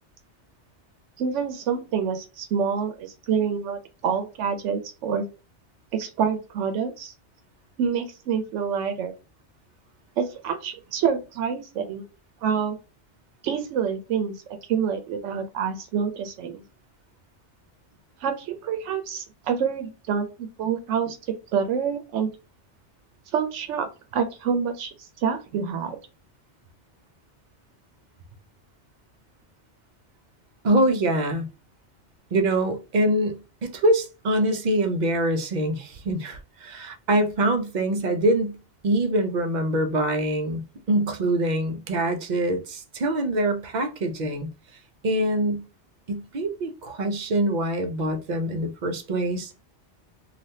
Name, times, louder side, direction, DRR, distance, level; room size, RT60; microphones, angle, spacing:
voice 1, 1.2-5.2 5.9-7.1 7.8-9.1 10.2-12.0 12.4-12.8 13.4-14.3 14.7-16.6 18.2-21.2 21.5-22.3 23.3-24.9 25.2-26.0, right 7 dB, 85° right, 0.9 m, -27 dB
voice 2, 30.6-31.5 32.3-38.6 38.8-40.6 40.9-44.5 45.0-45.6 46.1-49.5, right 1 dB, 50° right, 0.6 m, -24 dB
3.3 x 2.4 x 2.6 m
omnidirectional pair, 1.2 m